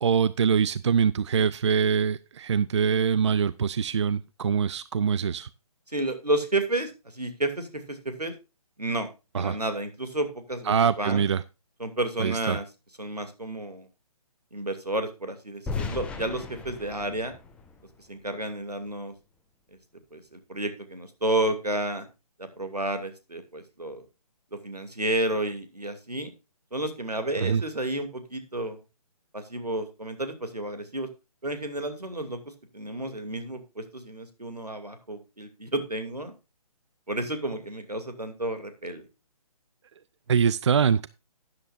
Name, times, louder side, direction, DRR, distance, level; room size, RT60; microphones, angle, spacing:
voice 1, 0.0-5.5 9.3-9.6 10.7-11.4 12.2-12.6 27.4-27.6 40.3-41.1, right 6 dB, 50° right, 19 dB, 0.5 m, -24 dB
voice 2, 5.9-8.3 8.8-9.1 9.4-11.2 11.8-12.6 13.0-13.9 14.5-17.3 18.1-19.1 20.1-22.1 22.4-24.0 24.5-26.3 26.7-28.8 29.3-31.1 31.4-32.4 32.7-36.3 37.1-39.1, right 1 dB, 85° right, 8 dB, 2.7 m, -31 dB
sound 1, 15.7-18.6, left 4 dB, 5° left, 1.1 m, -36 dB
12.5 x 10.5 x 2.6 m, 0.28 s
figure-of-eight pair, 140°, 20 cm